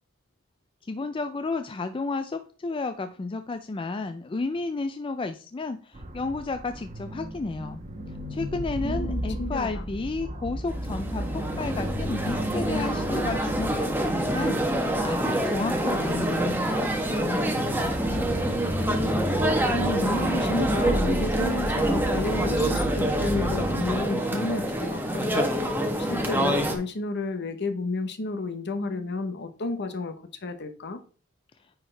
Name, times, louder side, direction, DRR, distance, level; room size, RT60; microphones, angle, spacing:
voice 1, 0.9-7.8 8.3-18.0, left 3 dB, 25° left, 0.4 m, -32 dB
sound 1, 5.9-24.0, right 1 dB, 35° right, 1.1 m, -34 dB
voice 2, 8.8-9.8 19.7-25.3 26.0-30.1 30.4-31.0, left 2 dB, 55° left, 0.9 m, -31 dB
sound 2, 10.7-26.8, right 1 dB, 10° right, 1.0 m, -26 dB
9.5 x 4.6 x 3.3 m
head